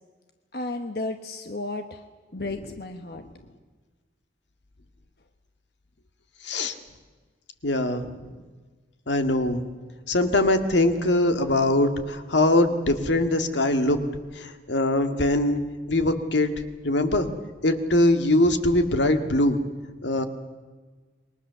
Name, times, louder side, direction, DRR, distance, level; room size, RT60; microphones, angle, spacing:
voice 1, 0.5-2.0 2.3-3.2, left 2 dB, 60° left, 6 dB, 1.2 m, -33 dB
voice 2, 6.4-6.7 7.6-8.1 9.1-9.6 10.1-14.0 14.4-15.6 15.9-16.5 16.8-17.3 17.6-19.6 20.0-20.2, left 1 dB, 80° left, 7 dB, 1.9 m, -22 dB
28.0 x 22.0 x 7.0 m, 1.4 s
head